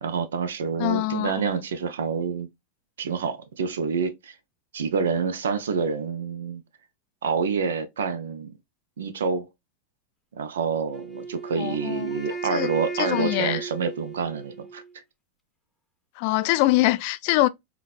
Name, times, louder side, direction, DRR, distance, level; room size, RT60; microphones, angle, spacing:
voice 1, 0.0-2.5 3.0-4.4 4.7-6.6 7.2-8.5 9.0-9.5 10.3-15.0, right 5 dB, 90° right, 0.5 m, -27 dB
voice 2, 0.8-1.3 11.6-12.1 12.5-12.7 13.0-13.6 16.2-17.5, left 18 dB, 55° left, 0.4 m, -23 dB
Wind instrument woodwind instrument, 10.9-15.0, right 4 dB, ahead, 0.8 m, -35 dB
3.9 x 2.2 x 2.4 m
hypercardioid pair, 120°, 0 cm